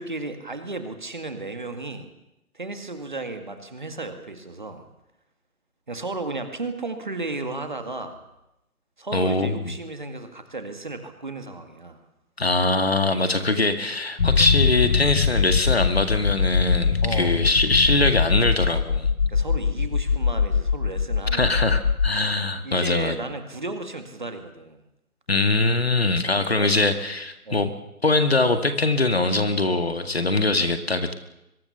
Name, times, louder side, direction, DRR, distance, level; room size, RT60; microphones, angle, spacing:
voice 1, 0.0-2.1 2.5-4.9 5.9-8.2 9.0-12.0 17.0-17.5 19.3-21.8 22.6-24.8 26.3-26.7 27.5-27.7, right 3 dB, 30° right, 7 dB, 2.1 m, -34 dB
voice 2, 9.1-9.6 12.4-19.1 21.3-23.2 25.3-27.7 28.0-31.1, left 2 dB, 45° left, 8 dB, 2.0 m, -22 dB
sound 1, 14.2-22.1, left 5 dB, 75° left, 1.0 m, -22 dB
23.0 x 22.5 x 7.1 m, 0.89 s
figure-of-eight pair, 175°, 45 cm